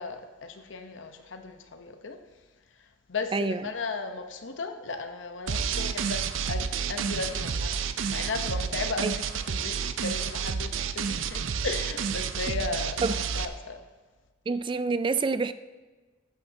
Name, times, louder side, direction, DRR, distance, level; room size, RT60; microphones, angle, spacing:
voice 1, 0.0-2.2 3.1-7.7 8.1-13.8, left 4 dB, 75° left, 6 dB, 0.8 m, -36 dB
voice 2, 3.3-3.6 9.0-9.1 13.0-13.2 14.5-15.5, right 4 dB, 25° right, 13 dB, 0.3 m, -27 dB
sound 1, 5.5-13.5, right 6 dB, 85° right, 0.5 m, -30 dB
13.0 x 8.9 x 2.8 m, 1.3 s
head